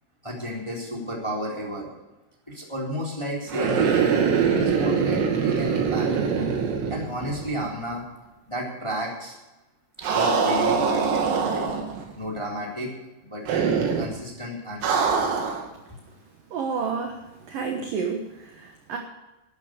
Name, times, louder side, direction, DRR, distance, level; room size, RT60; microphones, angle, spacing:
voice 1, 0.2-1.9 2.5-6.1 6.9-8.0 8.5-9.4 10.1-11.7 12.1-12.9 13.2-13.4 13.9-15.4 15.9-16.0, equal, 5° left, -3 dB, 2.4 m, -32 dB
sound 1, 3.5-7.6 7.9-8.0 10.0-12.0 13.5-14.1 14.8-15.7, right 6 dB, 90° right, 5.3 m, -23 dB
voice 2, 16.5-17.2 17.5-19.0, right 5 dB, 75° right, 3 dB, 2.1 m, -30 dB
12.5 x 11.5 x 6.6 m, 1.0 s
omnidirectional pair, 5.9 m